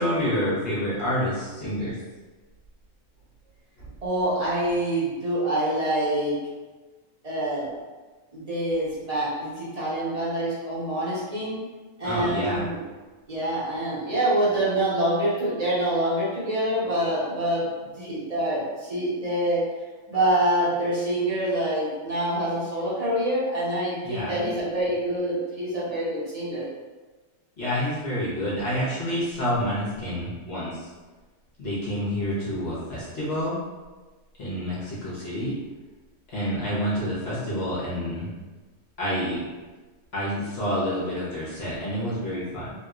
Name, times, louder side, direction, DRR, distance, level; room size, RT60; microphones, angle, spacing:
voice 1, 0.0-2.0 3.8-3.9 12.0-12.6 24.0-24.4 27.6-30.9 31.6-33.6 34.4-35.5 36.3-38.3 39.0-39.4 40.1-42.7, equal, 55° left, -9 dB, 1.2 m, -28 dB
voice 2, 4.0-6.3 7.2-7.7 8.3-11.6 12.0-12.8 13.3-19.6 20.1-26.6, right 1 dB, 30° right, -9 dB, 0.9 m, -26 dB
3.2 x 2.9 x 2.4 m, 1.3 s
omnidirectional pair, 1.4 m